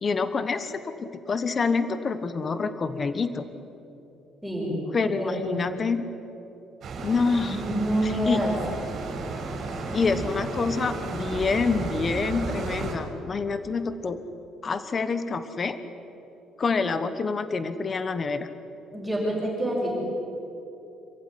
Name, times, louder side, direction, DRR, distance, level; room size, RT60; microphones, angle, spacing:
voice 1, 0.0-3.4 4.9-6.0 7.0-7.6 8.0-8.4 9.9-14.2 14.6-15.8 16.6-18.5, left 4 dB, 30° left, 11 dB, 1.2 m, -27 dB
voice 2, 4.4-4.7 5.1-5.4 7.4-8.5 18.9-20.0, right 1 dB, ahead, -4 dB, 6.2 m, -27 dB
sound 1, 6.8-13.0, right 3 dB, 45° right, 5.3 m, -33 dB
27.5 x 15.0 x 10.0 m, 2.9 s
cardioid pair, 145°, 0 cm